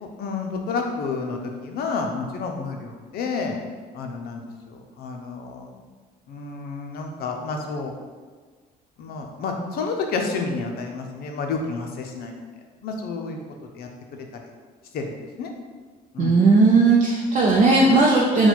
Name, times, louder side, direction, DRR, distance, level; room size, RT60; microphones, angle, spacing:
voice 1, 0.0-3.6 3.9-5.7 6.3-7.9 9.0-12.3 12.8-13.4 13.7-14.4 14.9-15.5 16.1-16.4, left 4 dB, 65° left, 3 dB, 0.6 m, -30 dB
voice 2, 16.2-18.5, right 3 dB, 45° right, -4 dB, 0.6 m, -17 dB
4.0 x 2.3 x 4.4 m, 1.5 s
cardioid pair, 110°, 17 cm